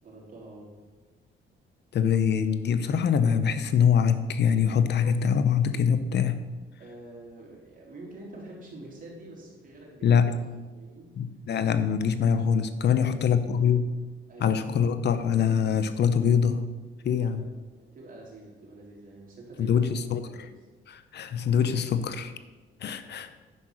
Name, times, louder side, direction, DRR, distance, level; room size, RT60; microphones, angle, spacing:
voice 1, 0.0-0.8 6.8-10.1 10.5-11.2 12.8-13.1 13.4-13.8 14.3-14.6 17.1-20.0 20.2-20.5, right 2 dB, 45° right, -3 dB, 3.8 m, -47 dB
voice 2, 1.9-6.4 10.0-10.3 11.2-13.8 14.4-16.6 17.0-17.5 19.6-20.3 20.9-22.3 22.8-23.3, left 7 dB, 60° left, 11 dB, 0.8 m, -24 dB
9.8 x 5.6 x 6.3 m, 1.2 s
cardioid pair, 90°, 20 cm